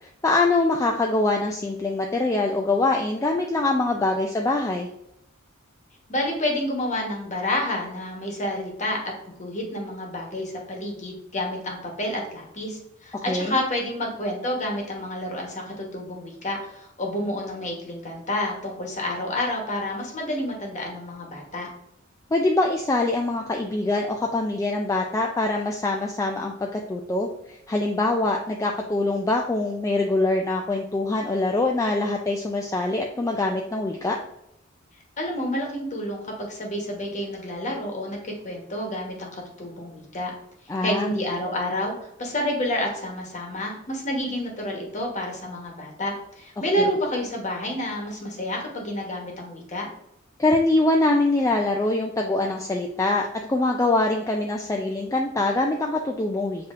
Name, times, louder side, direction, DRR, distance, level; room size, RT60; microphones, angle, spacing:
voice 1, 0.0-4.9 13.1-13.5 22.3-34.2 40.7-41.1 50.4-56.7, left 2 dB, 15° left, 1 dB, 0.3 m, -24 dB
voice 2, 6.1-21.7 35.2-39.3 39.6-40.3 40.8-49.9, left 1 dB, 35° left, 1 dB, 1.1 m, -29 dB
7.2 x 2.8 x 2.5 m, 0.77 s
head